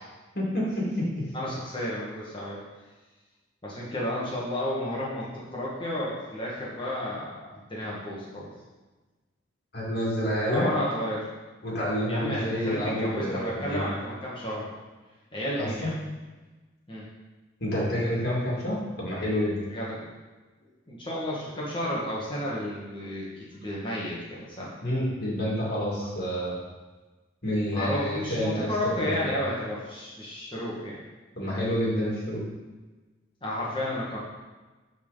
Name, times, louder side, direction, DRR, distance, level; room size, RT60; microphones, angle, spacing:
voice 1, 0.3-1.0 9.7-10.7 11.6-13.8 15.6-15.9 17.6-19.6 24.8-26.5 27.4-28.7 29.0-29.3 31.3-32.4, equal, 50° left, -5 dB, 2.5 m, -28 dB
voice 2, 1.3-2.6 3.6-8.5 10.5-11.3 12.1-14.7 15.3-16.0 16.9-17.1 19.7-20.1 20.9-24.7 27.7-31.0 33.4-34.2, left 1 dB, 25° left, -6 dB, 2.0 m, -32 dB
10.0 x 4.4 x 4.1 m, 1.2 s
head